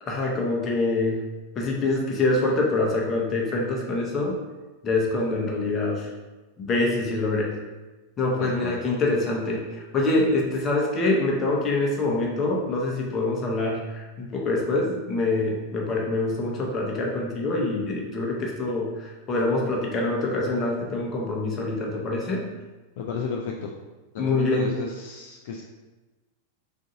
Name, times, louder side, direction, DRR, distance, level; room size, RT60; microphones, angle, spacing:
voice 1, 0.0-1.2 1.6-4.4 4.8-6.1 6.6-7.5 8.2-22.5 24.2-24.7, left 2 dB, 25° left, -1 dB, 0.8 m, -25 dB
voice 2, 8.4-8.8 23.0-23.7 24.1-25.6, left 5 dB, 55° left, 0 dB, 0.3 m, -33 dB
3.7 x 2.6 x 3.8 m, 1.2 s
figure-of-eight pair, 90°, 0 cm